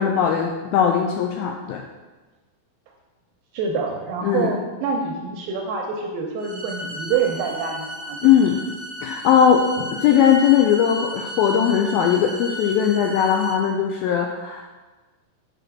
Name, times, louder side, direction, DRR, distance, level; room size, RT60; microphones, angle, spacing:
voice 1, 0.0-1.8 4.2-4.5 8.2-8.6 9.0-14.7, left 8 dB, 90° left, 2 dB, 2.1 m, -19 dB
voice 2, 3.5-8.2, right 5 dB, 80° right, 1 dB, 2.2 m, -26 dB
sound 1, 6.4-13.5, equal, 30° left, 1.2 m, -34 dB
7.8 x 5.0 x 6.0 m, 1.2 s
omnidirectional pair, 4.8 m